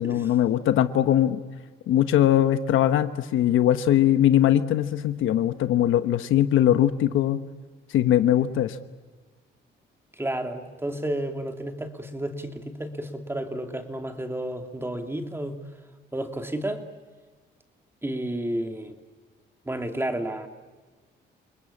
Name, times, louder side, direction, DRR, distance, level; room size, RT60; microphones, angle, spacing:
voice 1, 0.0-1.4 1.9-7.4 7.9-8.8, left 11 dB, 80° left, 10 dB, 1.2 m, -21 dB
voice 2, 10.2-15.5 16.1-16.8 18.0-18.9 19.7-20.5, right 1 dB, 10° right, 5 dB, 2.7 m, -31 dB
29.0 x 20.0 x 8.6 m, 1.4 s
cardioid pair, 90°, 20 cm